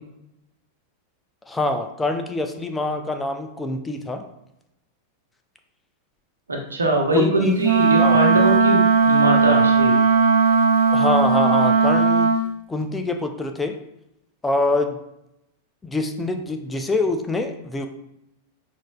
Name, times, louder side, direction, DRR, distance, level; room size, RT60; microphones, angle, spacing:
voice 1, 1.5-4.2 7.1-7.6 8.0-8.2 10.9-12.3 12.7-13.7 14.4-15.0 15.8-17.9, left 2 dB, 10° left, 5 dB, 0.4 m, -25 dB
voice 2, 6.5-9.9, right 1 dB, 75° right, 0 dB, 0.8 m, -22 dB
Wind instrument woodwind instrument, 7.6-12.4, right 4 dB, 50° right, 0.5 m, -17 dB
6.1 x 2.5 x 2.2 m, 0.83 s
figure-of-eight pair, 90°, 0 cm